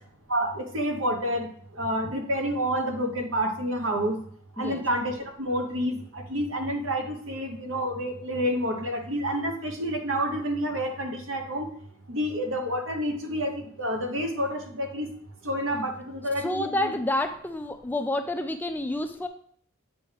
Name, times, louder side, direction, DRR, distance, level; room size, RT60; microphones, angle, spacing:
voice 1, 0.3-1.5 1.7-4.2 4.6-11.7 12.1-15.1 15.4-16.9, equal, 65° right, 4 dB, 1.1 m, -29 dB
voice 2, 16.4-19.3, left 1 dB, 10° left, 7 dB, 0.3 m, -29 dB
8.4 x 5.2 x 3.4 m, 0.62 s
head